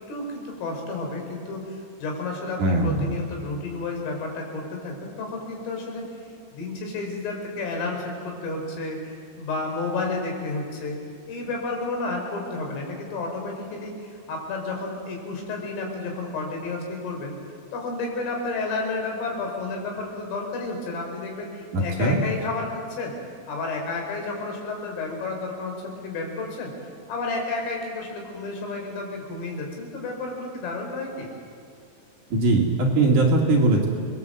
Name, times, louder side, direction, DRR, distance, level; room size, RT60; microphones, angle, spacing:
voice 1, 0.1-6.1 6.5-11.0 11.3-17.3 17.7-23.1 23.5-26.7 27.1-31.3, left 3 dB, 80° left, 1 dB, 7.2 m, -31 dB
voice 2, 2.6-3.1 21.7-22.2 32.3-33.9, right 2 dB, 45° right, -1 dB, 3.4 m, -20 dB
29.5 x 21.0 x 8.0 m, 2.2 s
omnidirectional pair, 5.7 m